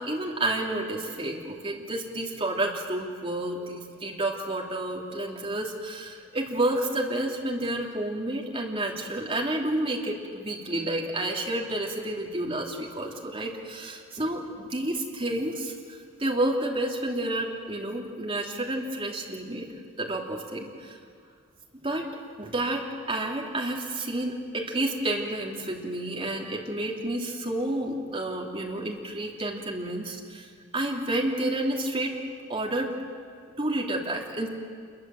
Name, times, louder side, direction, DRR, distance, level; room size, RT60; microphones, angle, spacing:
voice 1, 0.0-15.7 16.2-19.7 20.0-21.0 21.7-22.1 22.4-32.1 32.5-32.9 33.6-34.5, right 1 dB, 25° right, -2 dB, 3.0 m, -30 dB
27.5 x 22.5 x 7.8 m, 2.1 s
head